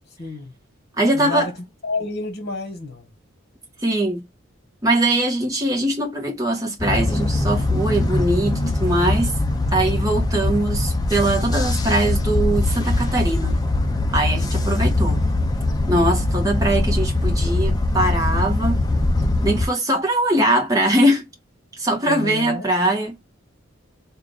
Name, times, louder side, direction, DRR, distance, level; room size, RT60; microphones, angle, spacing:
voice 1, 0.2-0.5 1.1-1.5 1.8-3.1 22.0-22.7, left 3 dB, 50° left, 1.4 m, -29 dB
voice 2, 1.0-1.5 3.8-4.2 4.8-9.4 9.7-13.6 14.1-15.2 15.9-18.8 19.4-21.2 21.7-23.2, right 1 dB, 15° right, 0.9 m, -21 dB
sound 1, 6.8-19.7, left 2 dB, 20° left, 0.4 m, -21 dB
3.6 x 2.4 x 3.5 m
head